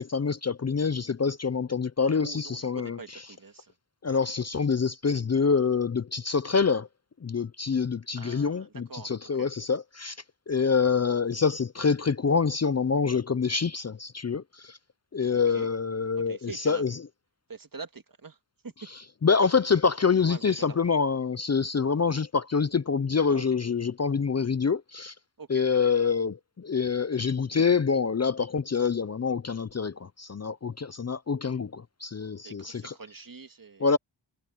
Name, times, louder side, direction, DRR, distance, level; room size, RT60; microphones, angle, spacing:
voice 1, 0.0-3.0 4.0-6.9 7.2-10.2 10.5-14.8 15.1-16.9 19.2-25.1 25.5-32.9 33.8-34.0, left 5 dB, 35° left, 0.6 m, -26 dB
voice 2, 2.2-3.7 8.2-9.5 15.3-15.7 16.3-16.8 17.5-18.4 18.6-18.7 20.3-20.8 23.3-23.5 25.4-25.7 32.4-33.9, right 4 dB, 45° right, 2.0 m, -44 dB
wide cardioid pair, 90°, 46 cm